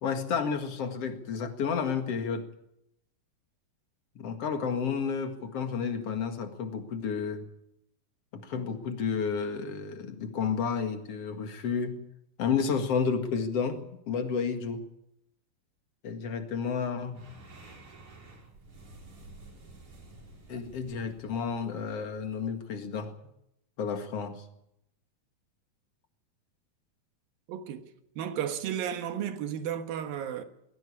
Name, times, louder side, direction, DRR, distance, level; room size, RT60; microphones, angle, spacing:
voice 1, 0.0-2.5 4.2-7.5 8.3-12.0 12.4-14.8 16.0-17.2 20.5-23.1 23.8-24.4, left 6 dB, 50° left, 2.6 m, -31 dB
sound 1, 17.1-22.7, right 2 dB, 60° right, 6.0 m, -52 dB
voice 2, 27.5-27.8 28.2-30.4, right 9 dB, 80° right, 3.2 m, -33 dB
20.5 x 16.0 x 8.6 m
omnidirectional pair, 4.1 m